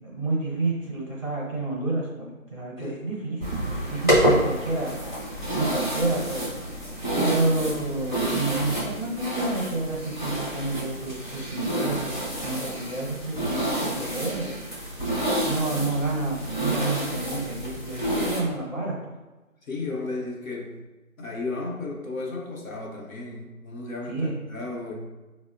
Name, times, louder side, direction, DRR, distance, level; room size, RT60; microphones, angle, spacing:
voice 1, 0.0-4.9 5.2-6.4 7.2-14.6 15.4-19.1 24.1-24.3, right 2 dB, 40° right, -5 dB, 0.7 m, -29 dB
sound 1, 3.4-18.4, right 1 dB, 35° left, 0.6 m, -28 dB
voice 2, 3.9-4.2 19.6-20.8 21.2-24.9, left 3 dB, 65° left, -2 dB, 0.9 m, -34 dB
4.3 x 2.1 x 2.4 m, 1.1 s
figure-of-eight pair, 170°, 43 cm